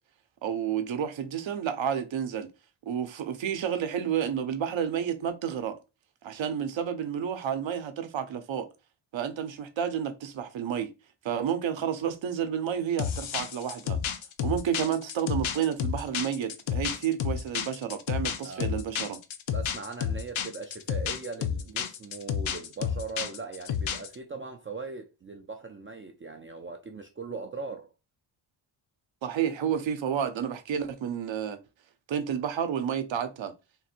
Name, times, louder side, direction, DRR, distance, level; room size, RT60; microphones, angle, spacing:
voice 1, 0.4-2.5 2.8-5.8 6.2-8.7 9.1-10.9 11.2-14.0 14.4-19.2 29.2-31.6 32.1-33.5, right 8 dB, 65° right, 0.7 m, -30 dB
sound 1, 13.0-24.1, left 8 dB, 70° left, 0.6 m, -31 dB
voice 2, 19.5-27.9, right 4 dB, 25° right, 0.4 m, -40 dB
3.6 x 2.5 x 4.2 m
wide cardioid pair, 165°, 49 cm